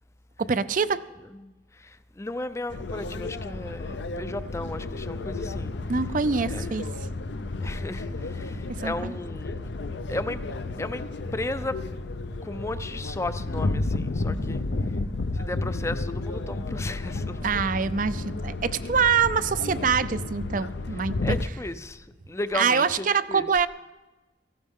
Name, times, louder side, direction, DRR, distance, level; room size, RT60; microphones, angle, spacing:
voice 1, 0.4-1.0 5.9-6.8 8.8-9.1 17.4-21.4 22.5-23.7, right 6 dB, 45° right, 0.5 m, -25 dB
voice 2, 1.2-5.7 6.5-6.8 7.6-9.5 10.1-10.4 10.8-11.0 11.3-11.8 12.4-14.6 15.3-17.4 21.2-23.5, left 2 dB, 15° left, 0.5 m, -35 dB
sound 1, 2.7-21.5, left 2 dB, 70° left, 0.6 m, -32 dB
17.0 x 15.0 x 3.6 m
head